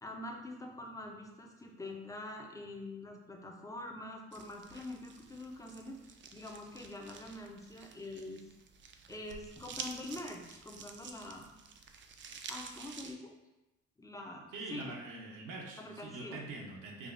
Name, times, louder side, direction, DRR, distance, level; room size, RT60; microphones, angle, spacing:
voice 1, 0.0-8.4 9.1-11.6 12.5-13.3 14.0-14.9 15.8-16.4, left 1 dB, 10° left, 1 dB, 0.5 m, -45 dB
sound 1, 4.3-13.1, right 5 dB, 40° right, 0.4 m, -49 dB
voice 2, 14.5-17.1, right 2 dB, 90° right, -2 dB, 0.8 m, -44 dB
4.9 x 2.3 x 2.5 m, 0.99 s
cardioid pair, 90°, 30 cm